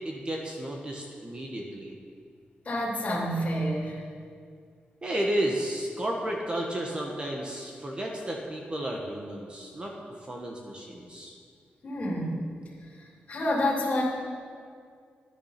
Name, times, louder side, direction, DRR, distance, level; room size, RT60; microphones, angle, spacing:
voice 1, 0.0-1.9 5.0-9.9 10.2-11.3, right 1 dB, 25° right, 0 dB, 1.3 m, -32 dB
voice 2, 2.6-4.0 11.8-12.4 13.0-14.0, left 1 dB, 35° left, -5 dB, 3.1 m, -29 dB
12.5 x 10.0 x 5.9 m, 2.2 s
wide cardioid pair, 135°, 4 cm